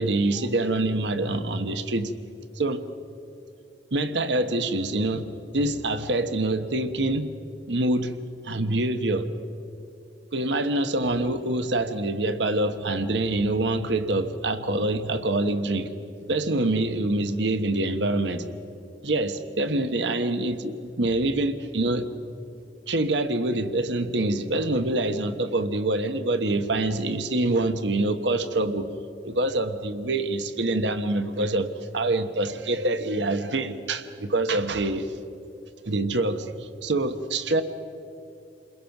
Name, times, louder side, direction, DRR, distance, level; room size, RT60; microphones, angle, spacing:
voice 1, 0.0-2.1 2.6-2.8 3.9-7.3 7.7-8.1 8.4-9.3 10.3-15.9 16.3-18.4 19.0-22.1 22.9-28.9 29.2-35.1 35.8-37.6, right 2 dB, 85° right, 9 dB, 1.1 m, -25 dB
29.0 x 21.5 x 6.0 m, 2.7 s
head